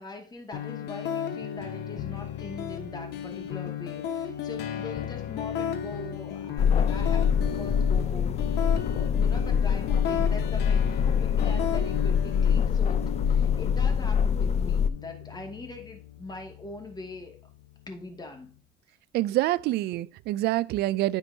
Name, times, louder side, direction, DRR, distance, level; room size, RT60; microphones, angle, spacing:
voice 1, 0.0-17.4 17.9-18.5, left 2 dB, 25° left, 2.2 m, -42 dB
sound 1, 0.5-18.5, left 9 dB, 80° left, 1.2 m, -35 dB
sound 2, 6.6-14.9, left 7 dB, 40° left, 0.5 m, -24 dB
voice 2, 19.1-21.2, right 16 dB, 75° right, 0.4 m, -26 dB
9.7 x 5.9 x 2.8 m
cardioid pair, 110°, 17 cm